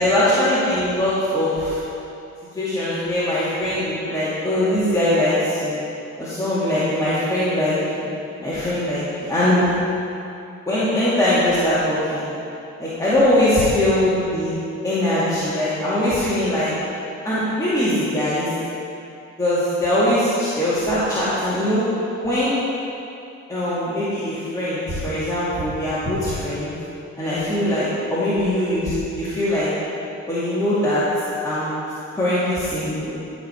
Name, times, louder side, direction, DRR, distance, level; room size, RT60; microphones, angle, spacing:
voice 1, 0.0-1.8 2.5-5.8 6.2-8.1 8.4-9.7 10.7-12.3 12.8-14.5 14.8-16.7 17.2-18.5 19.4-21.8 22.2-22.6 23.5-26.7 27.2-29.7 30.3-31.0 31.4-31.7 32.1-33.1, left 1 dB, 10° left, -12 dB, 2.4 m, -21 dB
12.5 x 5.2 x 5.1 m, 2.8 s
cardioid pair, 90°, 30 cm